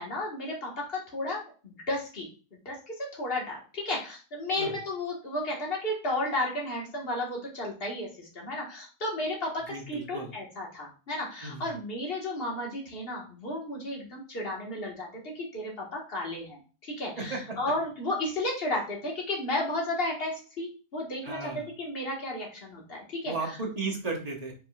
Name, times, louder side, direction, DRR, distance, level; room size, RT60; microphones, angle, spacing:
voice 1, 0.0-2.3 2.6-23.3, left 1 dB, 40° left, -2 dB, 1.7 m, -33 dB
voice 2, 9.7-10.3 11.4-11.7 17.2-17.6 21.2-21.7 23.2-24.5, right 3 dB, 30° right, 0 dB, 0.9 m, -35 dB
4.8 x 4.4 x 2.4 m, 0.36 s
omnidirectional pair, 1.5 m